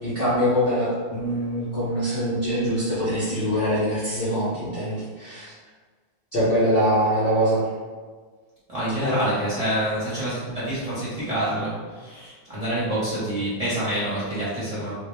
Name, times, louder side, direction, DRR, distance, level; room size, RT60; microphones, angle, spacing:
voice 1, 0.0-5.5 6.3-7.6 9.0-9.1, equal, 40° left, -12 dB, 0.9 m, -23 dB
voice 2, 8.7-14.9, right 1 dB, 20° right, -11 dB, 1.2 m, -27 dB
3.0 x 2.9 x 3.5 m, 1.5 s
omnidirectional pair, 2.2 m